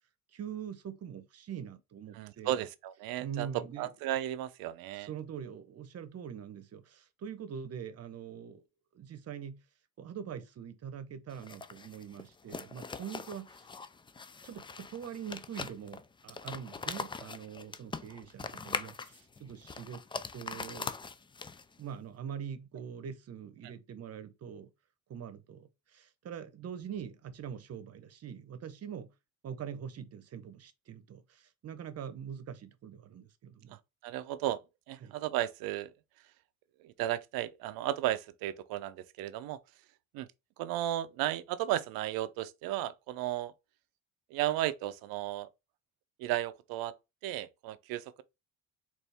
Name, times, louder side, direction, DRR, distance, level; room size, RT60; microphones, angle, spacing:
voice 1, 0.3-2.6 3.2-3.9 4.9-8.6 8.9-9.6 10.0-13.7 14.4-20.0 20.3-20.9 21.8-24.7 25.1-29.1 29.4-33.8 35.0-35.2, right 8 dB, 45° right, 0.8 m, -43 dB
voice 2, 2.1-5.1 34.0-34.6 34.9-35.9 36.8-39.6 40.1-40.3 40.6-43.5 44.3-45.5 46.2-46.9 47.2-48.2, right 13 dB, 80° right, 0.6 m, -34 dB
sound 1, 11.3-21.8, left 4 dB, 15° left, 0.3 m, -42 dB
4.1 x 2.6 x 3.4 m
supercardioid pair, 85°, 35 cm